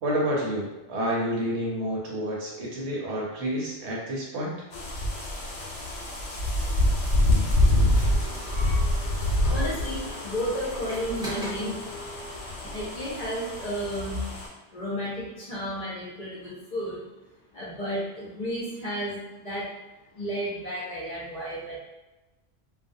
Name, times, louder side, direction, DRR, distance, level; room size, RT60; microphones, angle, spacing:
voice 1, 0.0-4.5, equal, 75° right, -3 dB, 1.0 m, -29 dB
sound 1, 4.7-14.5, left 1 dB, 85° left, 0.9 m, -26 dB
sound 2, 6.9-13.0, equal, 5° right, 0.6 m, -42 dB
voice 2, 9.5-11.8 12.7-14.2 14.7-17.0 17.5-19.2 19.4-19.7 20.1-21.8, equal, 45° left, -7 dB, 0.6 m, -32 dB
2.4 x 2.1 x 2.6 m, 1.1 s
omnidirectional pair, 1.2 m